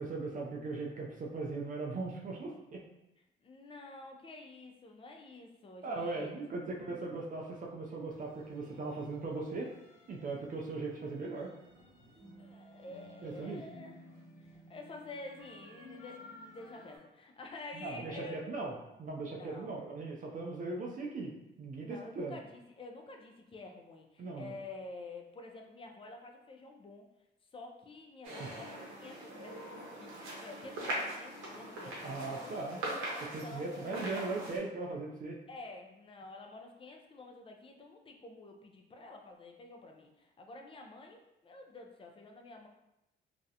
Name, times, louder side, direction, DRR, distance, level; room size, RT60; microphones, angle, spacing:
voice 1, 0.0-2.8 5.8-9.7 10.1-11.5 13.2-13.6 17.7-18.7 19.0-21.3 21.6-22.4 24.2-24.5 28.4-28.5 32.0-32.8 33.3-35.4, right 3 dB, 45° right, -1 dB, 0.4 m, -39 dB
voice 2, 3.4-6.9 12.4-14.0 14.4-18.6 19.4-19.7 21.8-27.1 27.5-32.9 33.4-34.1 35.5-42.7, left 2 dB, 25° left, 2 dB, 0.4 m, -49 dB
sound 1, 8.1-17.0, left 1 dB, 85° left, 0.9 m, -56 dB
sound 2, 28.2-34.6, right 1 dB, 90° right, 0.7 m, -41 dB
2.4 x 2.0 x 2.7 m, 0.89 s
cardioid pair, 90°, 20 cm